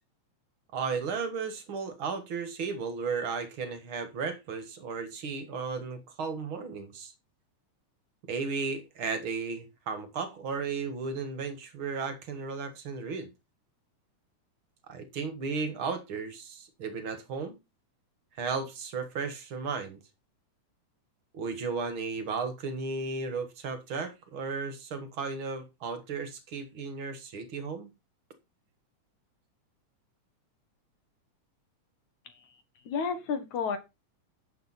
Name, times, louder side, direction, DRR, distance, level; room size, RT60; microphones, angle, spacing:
voice 1, 0.7-7.1 8.3-13.3 14.9-17.6 18.4-20.0 21.3-27.9, right 5 dB, 50° right, 1.9 m, -34 dB
voice 2, 32.9-33.8, left 5 dB, 70° left, 2.9 m, -31 dB
11.0 x 7.9 x 4.2 m
omnidirectional pair, 3.6 m